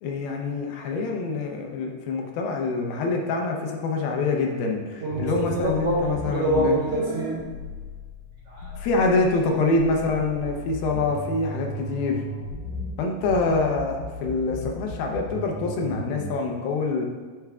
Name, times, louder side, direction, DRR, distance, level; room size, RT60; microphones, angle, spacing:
voice 1, 0.0-6.8 8.8-12.2 13.0-17.1, left 3 dB, 85° left, 1 dB, 2.6 m, -25 dB
voice 2, 5.0-7.4 8.5-8.9, right 1 dB, 50° right, -8 dB, 2.4 m, -26 dB
sound 1, 5.1-16.4, equal, 60° left, 2.9 m, -36 dB
10.5 x 4.5 x 2.4 m, 1.5 s
omnidirectional pair, 4.1 m